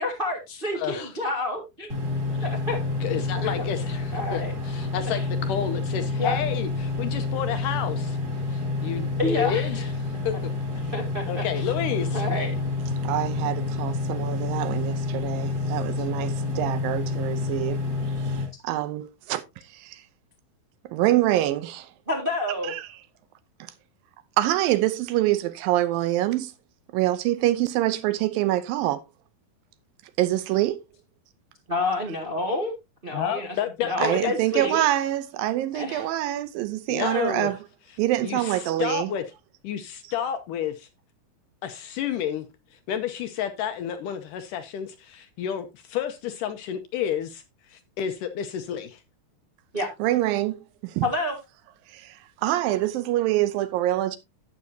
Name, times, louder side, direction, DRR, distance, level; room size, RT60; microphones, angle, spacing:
voice 1, 0.0-2.0 2.4-2.8 3.3-3.7 4.1-4.5 5.1-5.2 6.2-6.4 9.2-9.9 10.9-11.7 12.1-12.5 22.1-22.7 31.7-32.7 33.0-33.5 33.8-34.8 35.7-36.1 49.7-49.9 51.0-51.3, left 2 dB, 45° right, 0.6 m, -28 dB
voice 2, 0.7-1.1 3.0-4.4 4.7-8.2 8.5-9.8 10.2-10.5 10.8-10.9 11.3-12.2 33.1-34.3 36.9-37.5 38.2-39.2 39.6-40.9 41.6-42.5 42.7-49.0, left 9 dB, 75° left, 2.0 m, -30 dB
sound 1, 1.9-18.5, left 3 dB, 30° right, 2.8 m, -28 dB
voice 3, 13.0-17.8 18.3-19.4 19.7-20.0 20.9-21.9 22.7-22.9 24.4-26.5 26.9-29.0 30.2-30.8 34.0-37.6 38.0-39.1 50.0-50.6 50.8-51.1 51.9-54.2, right 14 dB, 80° right, 2.3 m, -25 dB
11.5 x 8.7 x 2.7 m
omnidirectional pair, 4.4 m